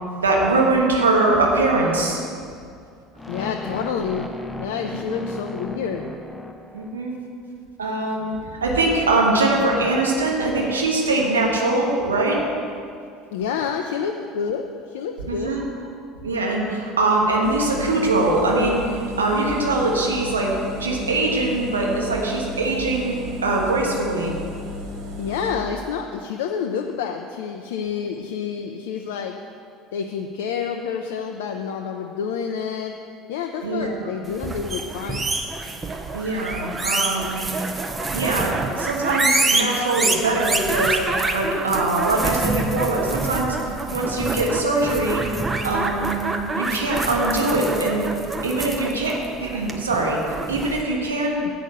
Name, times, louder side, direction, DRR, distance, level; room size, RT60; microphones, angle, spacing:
voice 1, 0.2-2.2 5.1-5.2 6.7-7.1 7.8-12.4 15.3-15.6 16.2-20.5 20.8-24.3 33.6-34.1 36.1-37.5 38.1-41.0 41.3-45.2 45.6-48.0 48.4-50.2 50.5-51.4, right 2 dB, 75° right, -1 dB, 1.3 m, -22 dB
sound 1, 3.2-7.3, left 2 dB, 10° left, 0.7 m, -35 dB
voice 2, 3.3-4.3 4.6-6.1 13.3-15.6 25.2-29.4 29.9-33.0 33.3-35.3, left 7 dB, 65° left, 3 dB, 0.5 m, -28 dB
sound 2, 17.4-25.5, left 1 dB, 60° right, 1.4 m, -34 dB
sound 3, 34.3-50.8, right 3 dB, 20° right, 0.9 m, -26 dB
8.2 x 6.3 x 8.1 m, 2.4 s
figure-of-eight pair, 65°, 0 cm